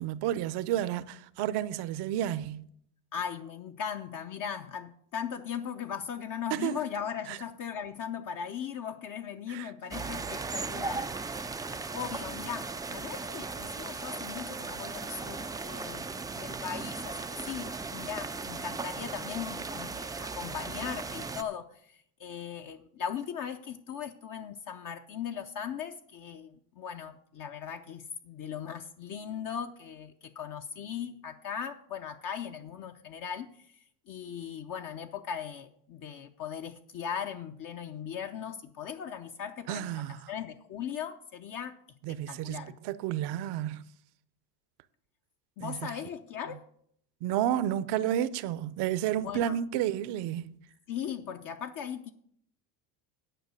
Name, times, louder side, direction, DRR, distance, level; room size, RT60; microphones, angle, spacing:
voice 1, 0.0-2.6 6.5-6.8 7.3-7.4 9.5-9.7 39.7-40.2 42.0-43.8 45.6-45.8 47.2-50.5, right 11 dB, 55° right, 0.8 m, -31 dB
voice 2, 3.1-11.5 11.9-16.1 16.3-33.8 34.1-41.8 42.1-42.8 45.6-46.6 49.2-49.6 50.9-52.1, left 8 dB, 40° left, 0.8 m, -38 dB
sound 1, 9.9-21.4, right 4 dB, 10° right, 0.4 m, -37 dB
10.0 x 5.5 x 8.1 m
supercardioid pair, 100°, 47 cm